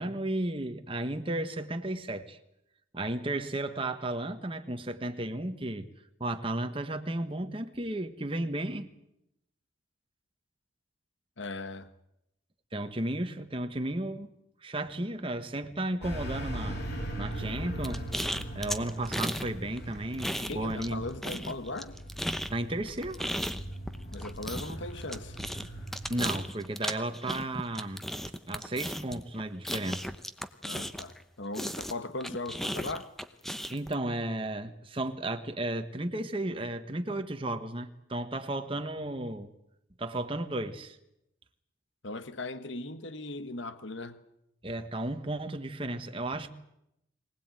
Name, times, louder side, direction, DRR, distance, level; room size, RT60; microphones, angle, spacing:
voice 1, 0.0-2.4 2.9-5.9 6.2-8.9 12.7-14.3 14.6-16.8 17.2-18.0 18.5-21.0 22.5-23.4 26.1-28.1 28.5-30.1 33.7-39.5 40.0-41.0 44.6-46.5, right 1 dB, 25° right, 1.4 m, -34 dB
voice 2, 11.4-11.9 20.5-22.0 24.1-25.4 30.6-33.1 42.0-44.2, left 2 dB, 70° left, 1.3 m, -38 dB
sound 1, 16.0-26.4, right 1 dB, 50° left, 6.1 m, -40 dB
sound 2, 17.8-19.5 19.8-20.9 21.2-31.2 31.5-33.9, equal, ahead, 0.9 m, -35 dB
24.0 x 18.5 x 9.1 m
head